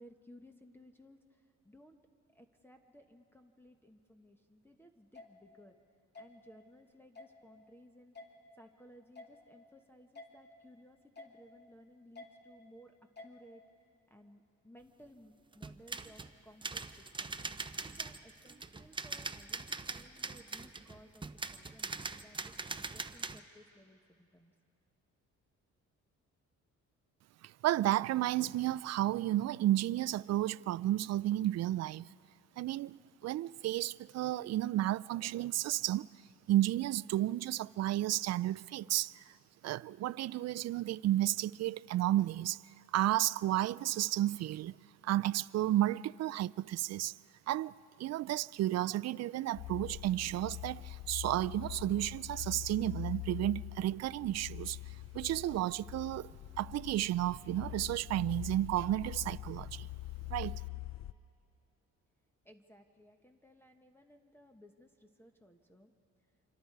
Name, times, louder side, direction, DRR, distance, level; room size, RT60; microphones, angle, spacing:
voice 1, 0.0-2.0 2.3-5.8 6.1-8.1 8.5-13.6 14.1-17.4 17.8-24.5 62.4-65.9, equal, 5° left, 1.2 m, -59 dB
sound 1, 5.1-5.3 6.1-6.3 7.1-7.3 8.1-8.3 9.1-9.3 10.1-10.3 11.1-11.3 12.1-12.3 13.2-13.3, left 3 dB, 35° left, 2.6 m, -49 dB
sound 2, 15.5-16.3 16.6-23.4, right 3 dB, 15° right, 0.7 m, -42 dB
voice 2, 27.4-32.1 32.6-36.1 36.5-39.3 39.6-42.6 42.9-44.8 45.0-47.2 47.5-47.7 48.0-59.9 60.3-60.6, right 14 dB, 60° right, 0.4 m, -32 dB
sound 3, 49.5-61.1, left 17 dB, 65° left, 0.6 m, -44 dB
26.5 x 25.5 x 4.7 m
cardioid pair, 90°, 30 cm